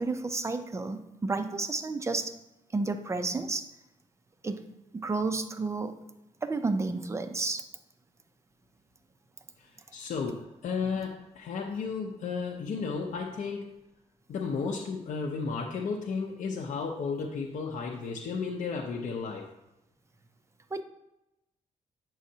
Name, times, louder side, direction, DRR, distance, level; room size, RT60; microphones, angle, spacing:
voice 1, 0.0-2.3 2.7-3.7 4.4-4.6 4.9-5.9 6.4-7.6 20.7-20.8, right 3 dB, 20° right, 8 dB, 0.5 m, -31 dB
voice 2, 9.6-13.8 14.3-19.5, left 5 dB, 70° left, 0 dB, 0.7 m, -33 dB
8.8 x 6.2 x 2.8 m, 0.91 s
cardioid pair, 130°, 13 cm